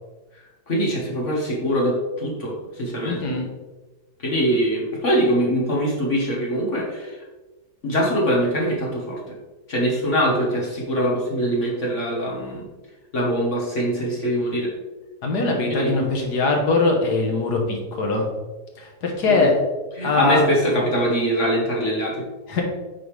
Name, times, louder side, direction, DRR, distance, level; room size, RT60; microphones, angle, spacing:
voice 1, 0.7-3.2 4.2-7.2 7.8-9.2 9.7-12.6 13.1-14.7 15.7-15.9 19.3-19.5 20.0-22.2, equal, 50° left, -3 dB, 1.7 m, -23 dB
voice 2, 3.0-3.5 15.2-18.3 18.8-19.5 20.0-20.4 22.5-22.6, left 3 dB, 80° left, 1 dB, 1.8 m, -21 dB
8.5 x 5.4 x 3.3 m, 1.2 s
omnidirectional pair, 1.7 m